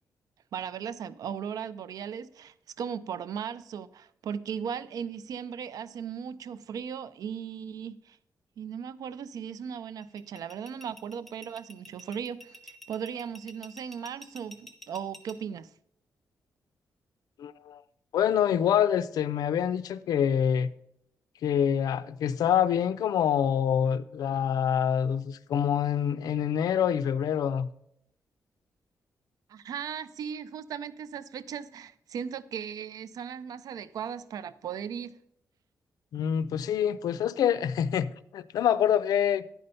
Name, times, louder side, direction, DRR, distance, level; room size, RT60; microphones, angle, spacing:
voice 1, 0.5-8.2 8.6-15.7 29.5-35.1, right 7 dB, 75° right, 0.5 m, -37 dB
sound 1, 10.0-15.3, equal, 5° left, 1.1 m, -48 dB
voice 2, 17.4-17.8 18.1-20.7 21.4-27.7 36.1-39.4, left 9 dB, 90° left, 0.5 m, -26 dB
10.5 x 5.4 x 5.5 m
cardioid pair, 115°, 6 cm